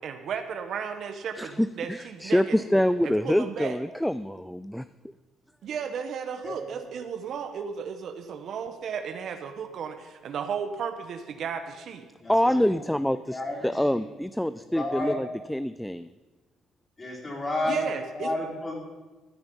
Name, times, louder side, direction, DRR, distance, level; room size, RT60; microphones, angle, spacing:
voice 1, 0.0-3.8 5.6-12.1 17.7-18.3, right 7 dB, 60° right, 8 dB, 1.1 m, -34 dB
voice 2, 1.4-4.9 12.3-16.1, equal, 5° left, 14 dB, 0.3 m, -26 dB
voice 3, 12.2-12.6 13.3-13.6 13.9-14.0 14.6-15.2 17.0-17.8 18.1-18.7, left 2 dB, 25° left, -3 dB, 4.7 m, -31 dB
15.5 x 9.0 x 5.4 m, 1.2 s
cardioid pair, 115°, 0 cm